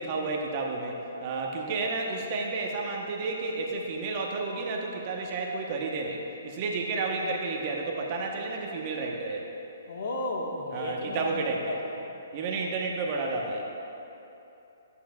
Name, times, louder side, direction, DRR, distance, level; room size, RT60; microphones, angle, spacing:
voice 1, 0.0-9.5 10.7-11.8 12.3-13.6, right 3 dB, 40° right, 0 dB, 1.0 m, -31 dB
voice 2, 9.9-12.0, left 2 dB, 60° left, 0 dB, 1.5 m, -34 dB
13.5 x 8.6 x 2.3 m, 2.9 s
hypercardioid pair, 140°, 0 cm